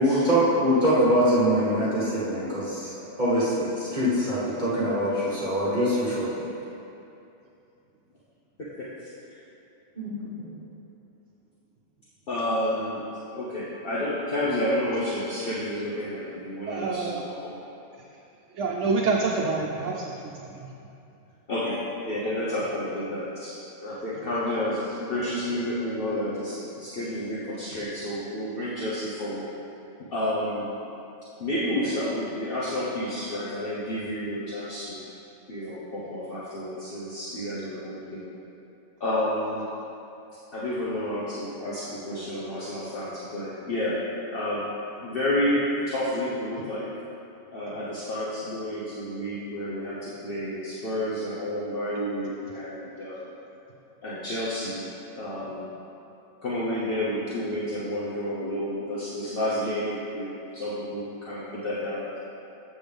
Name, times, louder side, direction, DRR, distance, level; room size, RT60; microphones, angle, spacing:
voice 1, 0.0-6.5 10.0-10.5, equal, 40° right, -8 dB, 1.4 m, -24 dB
voice 2, 12.3-13.0 13.3-17.5 21.5-21.8 22.0-23.5 23.8-29.4 30.0-30.7 31.4-35.1 35.5-38.3 39.0-39.7 40.5-44.0 44.3-44.7 45.0-46.9 47.5-53.3 54.0-54.8 55.2-55.7 56.4-62.2, left 1 dB, 50° left, -8 dB, 1.1 m, -30 dB
voice 3, 16.7-17.2 18.5-20.7, right 4 dB, 75° right, -2 dB, 1.0 m, -27 dB
7.8 x 7.7 x 3.4 m, 2.8 s
omnidirectional pair, 1.2 m